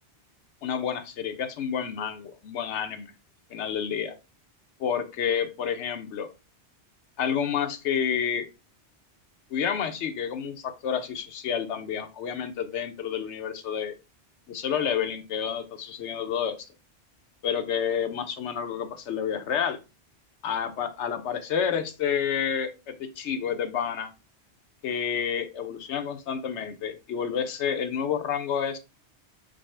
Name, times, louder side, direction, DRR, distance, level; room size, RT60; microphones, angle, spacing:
voice 1, 0.6-3.1 3.5-4.1 4.8-6.3 7.2-8.5 9.5-13.9 14.5-16.7 17.4-19.8 20.4-24.1 24.8-28.8, left 8 dB, 90° left, 9 dB, 1.0 m, -29 dB
5.0 x 2.0 x 4.6 m, 0.29 s
omnidirectional pair, 1.1 m